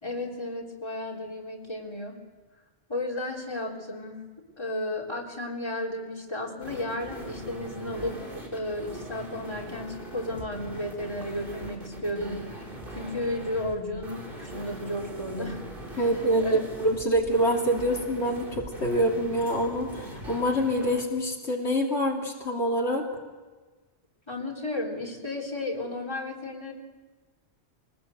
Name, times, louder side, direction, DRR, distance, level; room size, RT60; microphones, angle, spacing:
voice 1, 0.0-2.2 2.9-16.1 16.4-16.6 24.3-26.7, left 1 dB, 25° left, 1 dB, 4.1 m, -34 dB
sound 1, 6.6-21.0, right 1 dB, 50° right, 4.1 m, -41 dB
voice 2, 16.0-23.0, equal, 70° left, -1 dB, 3.2 m, -26 dB
24.5 x 20.0 x 8.0 m, 1.3 s
omnidirectional pair, 1.2 m